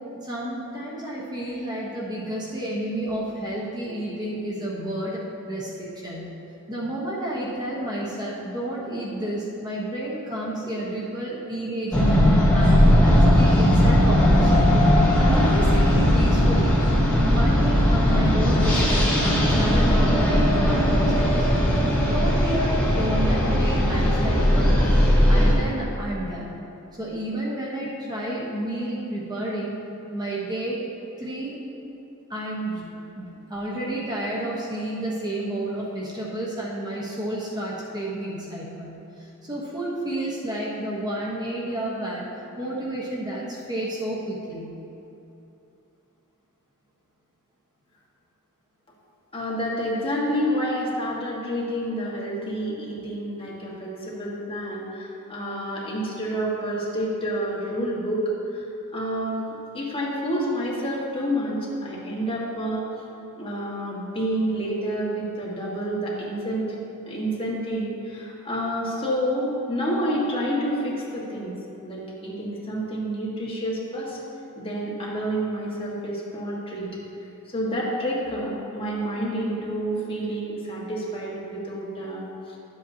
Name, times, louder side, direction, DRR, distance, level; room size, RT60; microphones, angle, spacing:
voice 1, 0.1-6.3 6.7-12.2 12.5-14.6 15.1-16.8 17.1-21.5 22.0-24.8 25.3-26.6 26.9-29.8 30.1-30.8 31.2-31.6 32.3-42.2 42.6-44.8, right 1 dB, 20° right, -6 dB, 1.1 m, -31 dB
sound 1, 11.9-25.5, equal, 5° left, 1.7 m, -18 dB
voice 2, 49.3-58.6 58.9-59.4 59.7-62.8 63.3-66.8 67.1-71.5 71.8-74.2 74.5-76.9 77.5-82.6, equal, 25° left, -6 dB, 1.6 m, -28 dB
11.5 x 7.7 x 2.8 m, 2.9 s
head